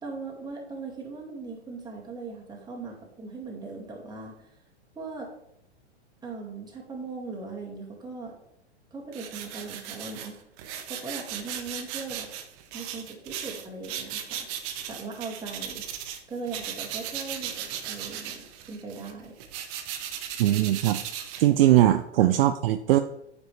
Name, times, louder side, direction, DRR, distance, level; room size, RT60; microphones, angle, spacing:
voice 1, 0.0-4.4 5.0-5.3 6.2-8.3 8.9-10.4 10.9-12.3 12.7-14.5 14.9-15.9 16.3-19.4 22.2-22.3, right 3 dB, 10° right, -1 dB, 2.0 m, -39 dB
sound 1, 9.1-16.2 16.5-21.9, right 9 dB, 40° right, 1.0 m, -37 dB
voice 2, 20.4-21.0 21.4-23.0, right 13 dB, 55° right, 9 dB, 0.5 m, -20 dB
9.4 x 5.2 x 3.2 m, 0.78 s
hypercardioid pair, 110°, 34 cm